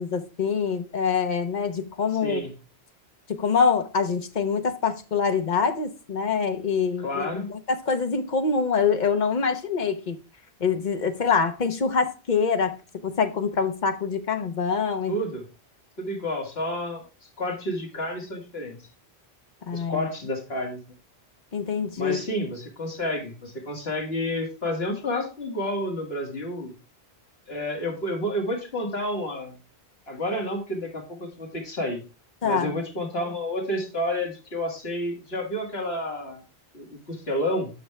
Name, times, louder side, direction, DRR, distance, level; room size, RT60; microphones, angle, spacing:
voice 1, 0.0-2.4 3.3-10.2 10.6-15.2 19.7-20.1 21.5-22.2 32.4-32.8, left 5 dB, 45° left, 1.0 m, -25 dB
voice 2, 2.2-2.5 7.0-7.5 15.1-15.4 16.0-17.0 17.4-18.8 19.7-20.8 22.0-26.7 27.5-29.6 30.1-32.0 32.4-36.4 36.7-37.7, left 1 dB, 70° left, 2.2 m, -30 dB
9.0 x 6.1 x 3.3 m
omnidirectional pair, 1.1 m